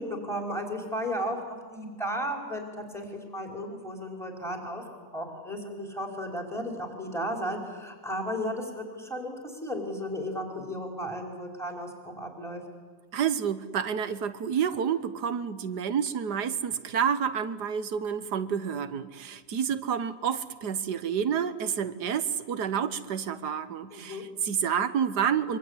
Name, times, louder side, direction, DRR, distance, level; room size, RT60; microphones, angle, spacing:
voice 1, 0.0-4.8 5.1-12.6 23.9-24.3, equal, ahead, 2 dB, 4.9 m, -34 dB
voice 2, 13.1-25.6, right 7 dB, 70° right, 13 dB, 1.6 m, -29 dB
25.0 x 24.5 x 9.9 m, 1.5 s
omnidirectional pair, 1.9 m